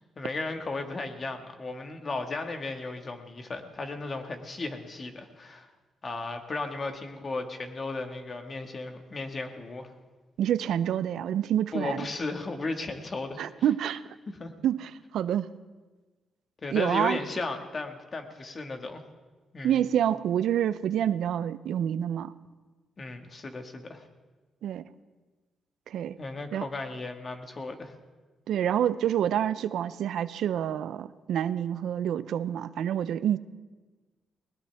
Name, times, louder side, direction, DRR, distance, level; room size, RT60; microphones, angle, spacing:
voice 1, 0.1-5.7 6.0-9.9 11.7-13.4 14.3-14.5 16.6-19.0 19.5-19.8 23.0-24.0 26.2-27.9, left 3 dB, 35° left, 6 dB, 1.8 m, -35 dB
voice 2, 10.4-12.1 13.4-14.0 14.6-15.5 16.7-17.2 19.6-22.3 24.6-24.8 25.9-26.2 26.5-26.7 28.5-33.4, right 10 dB, 80° right, 15 dB, 0.5 m, -27 dB
20.5 x 19.5 x 3.5 m, 1.3 s
cardioid pair, 90°, 0 cm